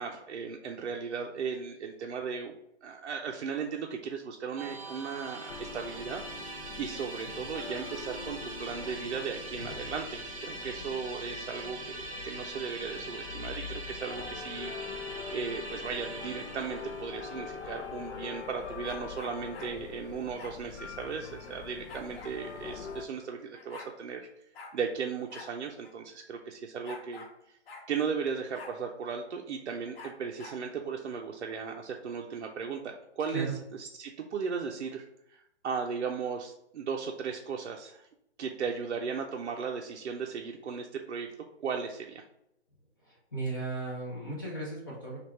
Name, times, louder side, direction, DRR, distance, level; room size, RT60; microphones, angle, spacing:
voice 1, 0.0-2.5 2.8-6.2 6.8-24.3 24.7-27.6 27.9-35.0 35.3-38.1 38.4-41.3 41.6-42.2, right 6 dB, 80° right, 2 dB, 0.6 m, -36 dB
Musical instrument, 4.6-19.7, right 2 dB, 30° right, 0.5 m, -43 dB
sound 1, 5.5-23.1, left 5 dB, 75° left, 0.6 m, -44 dB
sound 2, 18.8-19.7 20.4-20.6 21.9-22.4 23.2-23.3 23.5-23.9 24.5-24.7 25.3-25.5 25.8-25.9 26.8-27.3 27.7-27.9 28.5-28.8 29.9-30.6, left 3 dB, 60° left, 1.0 m, -46 dB
voice 2, 43.0-45.2, right 3 dB, 20° left, -5 dB, 0.5 m, -36 dB
3.4 x 2.4 x 4.2 m, 0.78 s
hypercardioid pair, 155°, 34 cm